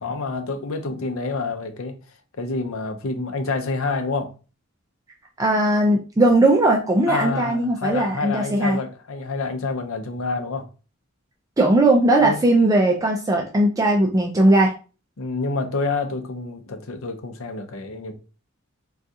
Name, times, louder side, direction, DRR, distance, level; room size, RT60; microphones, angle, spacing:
voice 1, 0.0-2.0 2.4-4.3 7.1-10.7 12.2-12.4 15.2-18.1, left 3 dB, 80° left, 0.6 m, -28 dB
voice 2, 5.4-8.8 11.6-14.7, right 1 dB, 15° right, 0.4 m, -18 dB
3.6 x 2.3 x 2.7 m
head